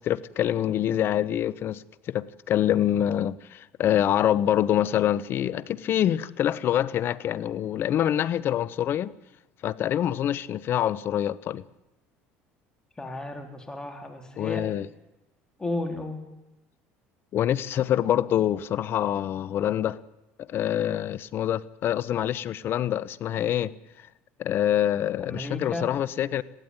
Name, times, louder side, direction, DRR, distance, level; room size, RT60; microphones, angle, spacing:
voice 1, 0.0-9.1 9.6-11.6 14.4-14.9 17.3-20.0 20.4-23.7 24.0-24.1 24.4-26.4, left 11 dB, 50° left, 0.9 m, -25 dB
voice 2, 13.0-14.6 15.6-16.2 25.3-25.8, left 2 dB, 15° left, 3.7 m, -33 dB
21.0 x 15.5 x 9.6 m
supercardioid pair, 90°, 5 cm